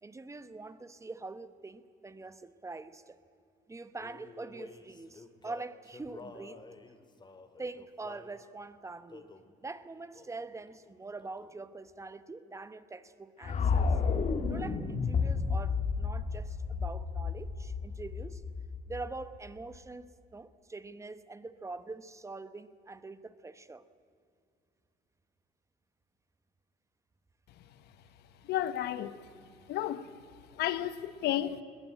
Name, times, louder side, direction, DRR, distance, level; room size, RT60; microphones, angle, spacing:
voice 1, 0.0-3.2 3.7-6.6 7.6-9.3 9.6-13.9 14.4-18.4 18.9-23.8, right 3 dB, 15° right, 1.0 m, -44 dB
Male singing, 4.0-8.4 9.1-9.5 10.1-10.4 10.7-11.6, left 3 dB, 25° left, 2.0 m, -51 dB
sound 1, 13.4-19.5, left 5 dB, 45° left, 1.9 m, -31 dB
voice 2, 28.4-29.2 29.7-30.1 30.6-31.6, left 12 dB, 75° left, 1.1 m, -32 dB
21.5 x 18.0 x 8.8 m
cardioid pair, 110°, 17 cm